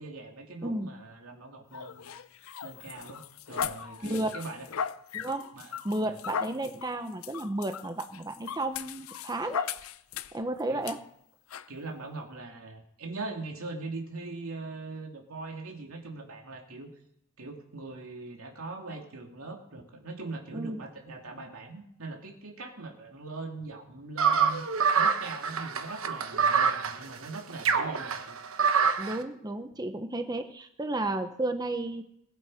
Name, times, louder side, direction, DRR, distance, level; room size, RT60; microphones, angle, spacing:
voice 1, 0.0-2.1 2.6-4.7 5.5-6.2 10.7-10.9 11.7-16.9 17.4-24.6 25.0-28.4, right 3 dB, 85° right, 2 dB, 2.7 m, -41 dB
sound 1, 1.7-10.4 10.8-11.0 11.5-11.7, left 7 dB, 80° left, 0.6 m, -38 dB
voice 2, 5.1-5.5 5.8-9.7 10.3-11.0 20.5-20.8 29.0-32.0, right 1 dB, 20° right, 7 dB, 0.7 m, -32 dB
sound 2, 24.2-29.2, right 6 dB, 70° right, 1.1 m, -26 dB
20.5 x 8.4 x 4.9 m, 0.75 s
head